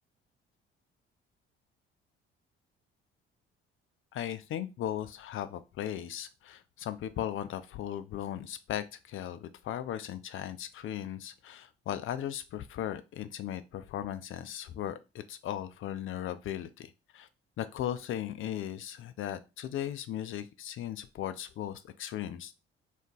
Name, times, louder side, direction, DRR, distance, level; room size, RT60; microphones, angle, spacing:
voice 1, 4.1-17.3 17.6-22.5, left 11 dB, 45° left, 11 dB, 0.4 m, -37 dB
2.4 x 2.2 x 3.6 m, 0.28 s
hypercardioid pair, 45°, 31 cm